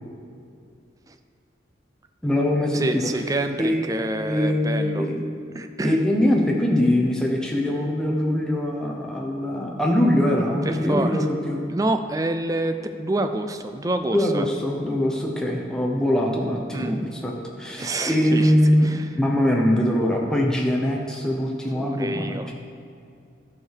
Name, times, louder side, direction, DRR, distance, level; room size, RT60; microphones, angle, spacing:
voice 1, 2.2-3.1 3.6-5.2 5.8-11.6 14.1-17.3 17.6-18.9 19.2-22.5, left 1 dB, 5° left, -1 dB, 0.8 m, -22 dB
voice 2, 2.7-5.1 5.5-6.0 10.7-11.3 11.7-14.5 16.7-17.1 17.8-18.5 18.8-19.1 21.8-22.5, right 2 dB, 20° right, 8 dB, 0.4 m, -27 dB
11.5 x 4.7 x 6.5 m, 2.5 s
head